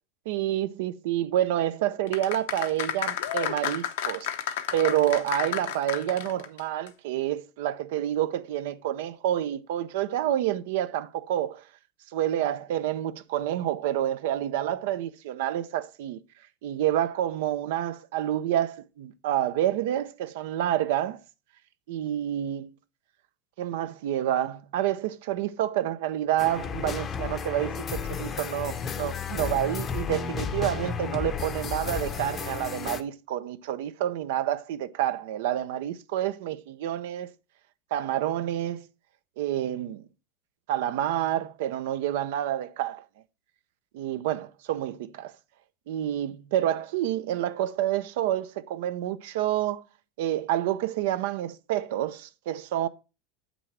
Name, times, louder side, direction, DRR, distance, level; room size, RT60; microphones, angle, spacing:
voice 1, 0.3-4.3 4.7-11.6 12.1-16.2 16.6-21.2 21.9-22.7 23.6-37.3 37.9-38.9 39.4-40.1 40.7-43.0 43.9-45.3 45.9-49.8 50.2-52.9, right 12 dB, 75° right, 0.5 m, -28 dB
sound 1, 2.1-6.6 6.9-7.0, left 10 dB, 80° left, 0.8 m, -31 dB
sound 2, 26.4-33.0, left 6 dB, 25° left, 0.6 m, -33 dB
7.9 x 6.1 x 3.2 m
supercardioid pair, 140°, 0 cm